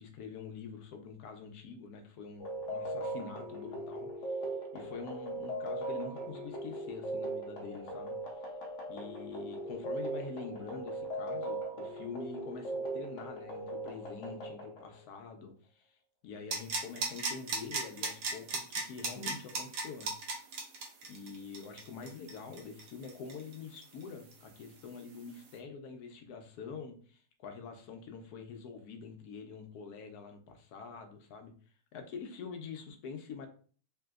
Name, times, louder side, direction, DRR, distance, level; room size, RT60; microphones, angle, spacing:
voice 1, 0.0-4.4 4.7-8.1 8.9-15.9 16.2-20.1 21.1-31.5 31.9-33.5, left 5 dB, 80° left, 5 dB, 1.1 m, -46 dB
sound 1, 2.4-15.0, right 1 dB, 60° left, 0.9 m, -39 dB
sound 2, 16.5-24.0 24.3-24.4, right 3 dB, 90° right, 1.3 m, -36 dB
3.3 x 2.9 x 2.3 m, 0.43 s
omnidirectional pair, 1.7 m